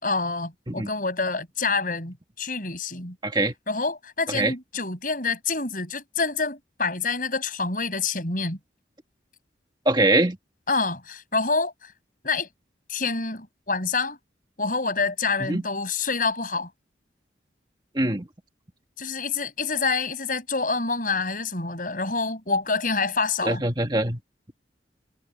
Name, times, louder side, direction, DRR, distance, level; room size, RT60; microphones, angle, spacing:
voice 1, 0.0-3.2 3.7-8.6 10.7-11.9 12.2-12.5 12.9-14.2 14.6-16.7 19.0-23.6, left 4 dB, 45° left, 6.7 m, -27 dB
voice 2, 3.2-3.5 4.3-4.5 9.9-10.4 15.4-15.6 17.9-18.3 23.4-24.2, right 2 dB, 25° right, 1.9 m, -23 dB
head